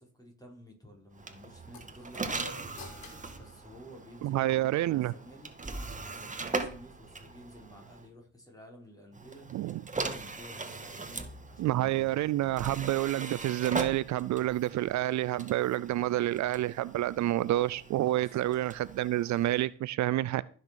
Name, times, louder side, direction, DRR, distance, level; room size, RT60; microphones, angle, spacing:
voice 1, 0.0-2.7 3.3-9.5 9.9-12.2 18.1-18.3, equal, 10° left, 0 dB, 5.9 m, -52 dB
sound 1, 1.1-8.1 9.1-19.7, right 3 dB, 25° right, 2.1 m, -40 dB
sound 2, 1.7-4.4, left 4 dB, 75° left, 3.6 m, -51 dB
voice 2, 4.2-5.1 9.5-9.8 11.6-20.4, right 15 dB, 75° right, 19 dB, 0.5 m, -28 dB
15.0 x 6.7 x 6.4 m, 0.43 s
supercardioid pair, 65°, 29 cm